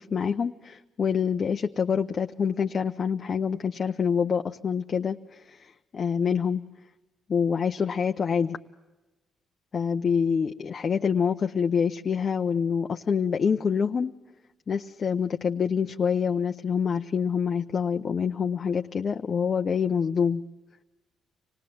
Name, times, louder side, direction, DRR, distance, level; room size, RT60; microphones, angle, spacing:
voice 1, 0.0-6.6 7.3-8.6 9.7-14.1 14.7-20.4, left 6 dB, 45° left, 4 dB, 0.7 m, -26 dB
26.0 x 18.5 x 7.8 m, 1.1 s
cardioid pair, 90°, 0 cm